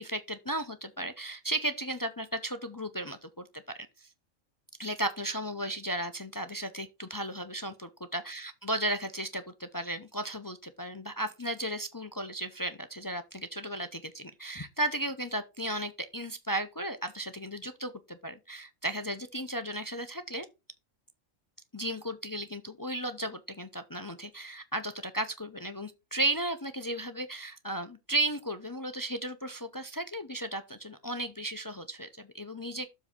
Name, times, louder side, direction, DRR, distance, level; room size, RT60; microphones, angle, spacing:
voice 1, 0.0-3.5 3.7-4.1 4.8-20.5 21.7-32.9, right 1 dB, 35° left, 0.3 m, -35 dB
7.4 x 4.0 x 6.5 m
omnidirectional pair, 1.4 m